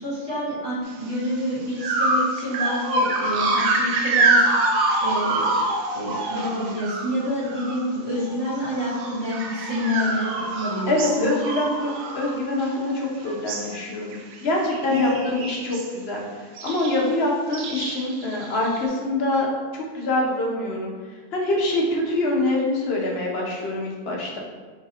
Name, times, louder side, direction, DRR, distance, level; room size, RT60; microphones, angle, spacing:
voice 1, 0.0-4.5 5.0-5.5 5.9-11.3 15.0-15.1, left 1 dB, 20° right, -9 dB, 1.4 m, -28 dB
sound 1, 1.1-1.3 1.8-7.9 8.2-13.0 13.3-13.8 14.1-14.4 14.7-15.9 16.6-17.1 17.5-18.8, right 2 dB, 70° right, 0.8 m, -25 dB
voice 2, 10.9-19.5 19.7-20.9 21.3-24.4, left 2 dB, 55° left, -2 dB, 0.9 m, -25 dB
3.9 x 3.6 x 2.8 m, 1.5 s
omnidirectional pair, 1.4 m